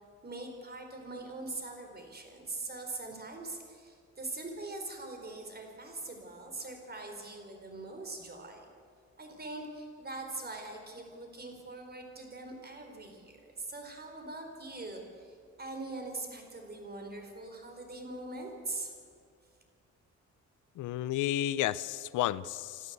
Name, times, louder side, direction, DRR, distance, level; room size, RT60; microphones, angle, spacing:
voice 1, 0.2-8.7 9.2-18.9, right 2 dB, 30° right, 4 dB, 4.5 m, -42 dB
voice 2, 20.8-22.9, left 13 dB, 85° left, 17 dB, 0.7 m, -32 dB
26.5 x 13.0 x 8.1 m, 2.2 s
cardioid pair, 90°, 30 cm